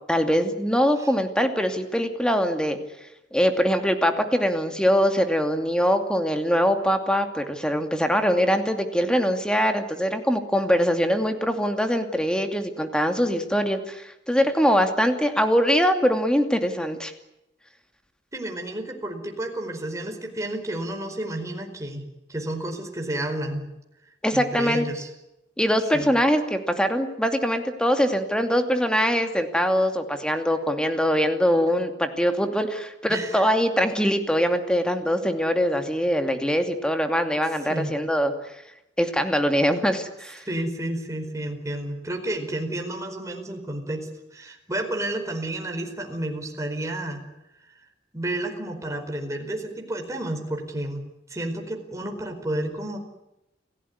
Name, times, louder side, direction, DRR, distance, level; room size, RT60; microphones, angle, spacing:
voice 1, 0.1-2.8 3.3-17.1 24.2-24.9 25.6-38.5 39.0-40.4, equal, 5° left, 6 dB, 2.6 m, -23 dB
voice 2, 18.3-23.7 24.3-25.1 25.9-26.1 33.1-33.5 37.7-37.9 40.4-47.2 48.1-51.0 51.3-53.0, right 1 dB, 15° right, 3 dB, 4.8 m, -31 dB
29.0 x 16.5 x 9.6 m, 0.90 s
head